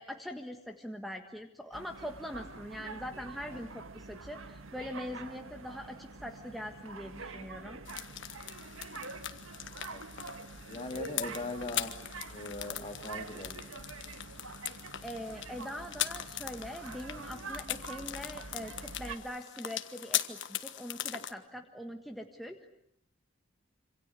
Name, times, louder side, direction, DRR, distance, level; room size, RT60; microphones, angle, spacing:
voice 1, 0.0-7.8 15.0-22.7, equal, ahead, 2 dB, 1.5 m, -42 dB
sound 1, 1.7-19.2, right 3 dB, 80° right, 1.8 m, -46 dB
sound 2, 7.8-21.3, left 12 dB, 60° left, 1.5 m, -40 dB
voice 2, 9.5-10.0 10.7-11.9 12.3-13.9, left 2 dB, 30° left, 4 dB, 3.0 m, -41 dB
27.0 x 26.0 x 8.2 m, 0.72 s
head